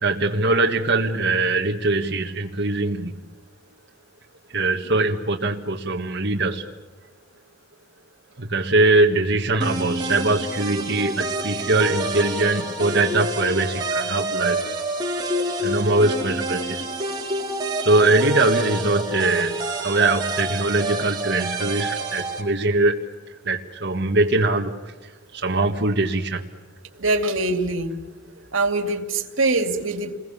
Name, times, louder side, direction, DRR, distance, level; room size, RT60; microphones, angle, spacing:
voice 1, 0.0-3.1 4.5-6.7 8.4-14.7 15.6-16.9 17.8-19.6 19.8-23.0 23.5-24.8 25.3-26.4, right 2 dB, 60° right, 0 dB, 1.6 m, -22 dB
sound 1, 9.6-22.4, right 1 dB, 20° right, 4.5 m, -28 dB
voice 2, 27.0-27.9 28.5-30.2, right 2 dB, 90° right, 6 dB, 2.6 m, -23 dB
29.0 x 22.0 x 7.2 m, 1.3 s
head